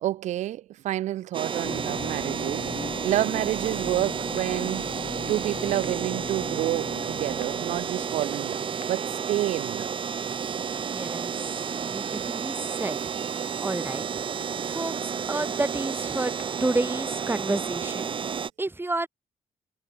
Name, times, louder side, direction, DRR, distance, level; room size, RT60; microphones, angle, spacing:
voice 1, 0.0-5.0 5.3-10.0, right 13 dB, 75° right, 0.7 m, -29 dB
sound 1, 1.3-18.5, right 7 dB, 45° right, 0.9 m, -31 dB
sound 2, 1.6-10.1, left 5 dB, 40° left, 2.0 m, -40 dB
sound 3, 7.4-7.7 8.6-9.3 10.2-11.1 12.1-12.7 14.2-14.8 16.1-16.9, left 11 dB, 70° left, 7.1 m, -54 dB
voice 2, 10.7-13.0 13.6-14.0 14.6-16.3 16.6-19.1, right 2 dB, 15° right, 5.7 m, -31 dB
supercardioid pair, 65°, 12 cm